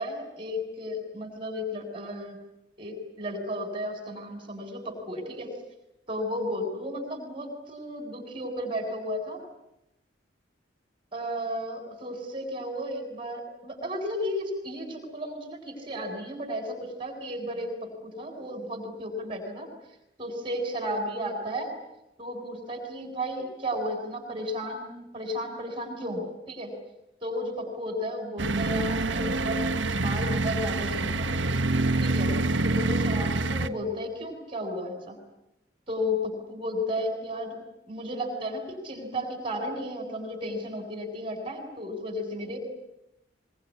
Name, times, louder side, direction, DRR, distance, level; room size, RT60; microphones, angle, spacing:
voice 1, 0.0-2.4 2.8-5.5 6.1-9.4 11.1-19.7 20.2-21.7 22.2-26.7 27.2-29.6 29.9-31.4 32.0-32.3 32.6-35.2 35.9-37.6 37.9-42.6, equal, 30° right, 5 dB, 7.5 m, -33 dB
sound 1, 28.4-33.7, right 2 dB, 80° right, 1.3 m, -26 dB
24.5 x 24.0 x 9.7 m, 0.87 s
head